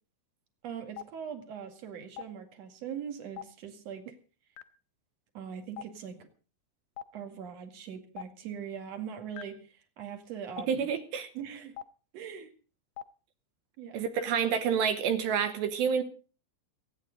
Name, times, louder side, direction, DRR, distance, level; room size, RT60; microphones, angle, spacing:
voice 1, 0.6-4.2 5.3-6.3 7.1-10.9 11.3-11.7 12.1-12.5 13.8-14.0, right 8 dB, 45° right, 6 dB, 2.3 m, -41 dB
Stream, 1.0-1.1 2.2-2.3 3.4-3.5 4.6-4.7 5.8-5.9 7.0-7.1 8.2-8.3 9.4-9.5 10.6-10.7 11.8-11.9 13.0-13.1 14.2-14.3, left 11 dB, 75° left, 2.6 m, -39 dB
voice 2, 10.7-11.3 13.9-16.0, right 7 dB, 70° right, 10 dB, 2.9 m, -28 dB
29.0 x 9.8 x 4.0 m, 0.38 s
omnidirectional pair, 5.7 m